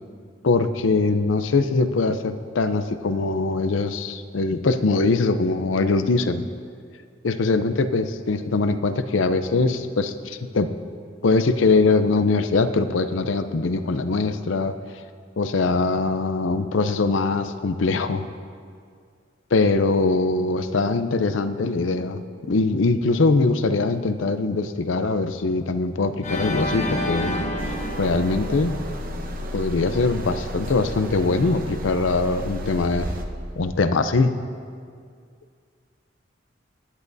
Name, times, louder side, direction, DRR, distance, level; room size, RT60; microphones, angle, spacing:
voice 1, 0.4-6.4 7.2-10.7 11.2-14.8 15.4-18.3 19.5-27.4 27.7-28.7 29.5-33.1 33.6-34.3, left 3 dB, 80° left, 10 dB, 0.6 m, -22 dB
Organ, 26.2-29.3, left 1 dB, 40° left, 0.9 m, -29 dB
sound 1, 27.6-33.2, equal, 50° right, 0.8 m, -33 dB
16.5 x 11.0 x 2.7 m, 2.2 s
head